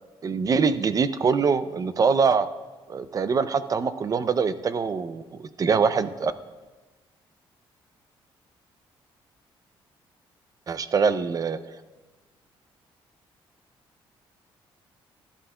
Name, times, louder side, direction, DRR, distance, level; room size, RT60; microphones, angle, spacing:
voice 1, 0.2-2.5 2.9-5.2 5.6-6.3 10.7-11.6, right 5 dB, 35° right, 13 dB, 0.5 m, -23 dB
12.5 x 11.0 x 2.3 m, 1.2 s
cardioid pair, 100°, 10 cm